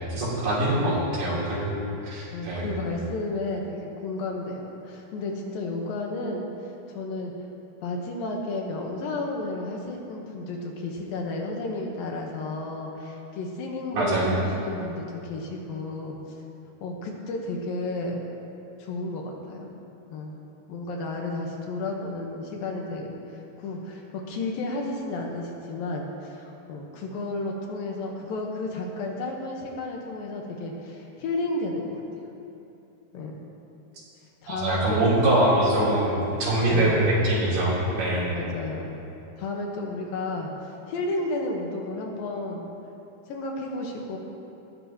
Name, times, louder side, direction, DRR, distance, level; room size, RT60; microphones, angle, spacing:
voice 1, 0.1-1.7 2.0-2.7 13.9-14.4 34.5-38.3, right 1 dB, 75° right, -8 dB, 5.6 m, -23 dB
voice 2, 0.7-1.1 2.3-7.3 7.8-16.2 16.8-18.2 18.8-19.7 20.1-20.4 20.7-32.0 33.1-33.5 34.4-35.1 36.7-37.0 38.3-39.0 39.4-42.7 43.3-44.2, left 2 dB, 70° left, 0 dB, 2.8 m, -32 dB
19.0 x 14.5 x 3.0 m, 2.9 s
omnidirectional pair, 4.5 m